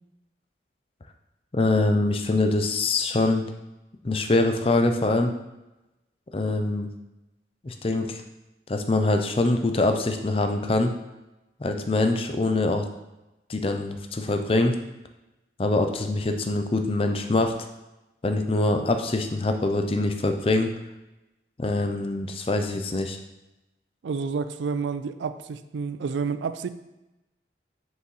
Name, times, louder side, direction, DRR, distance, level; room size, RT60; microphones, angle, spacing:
voice 1, 1.5-3.5 4.0-5.3 6.3-6.9 7.6-8.2 8.7-10.9 11.6-12.9 13.5-14.8 15.6-17.5 18.2-20.7 21.6-23.2, left 2 dB, 30° left, 6 dB, 0.5 m, -24 dB
voice 2, 24.0-26.7, right 5 dB, 90° right, 12 dB, 0.4 m, -29 dB
6.7 x 4.5 x 3.1 m, 0.98 s
head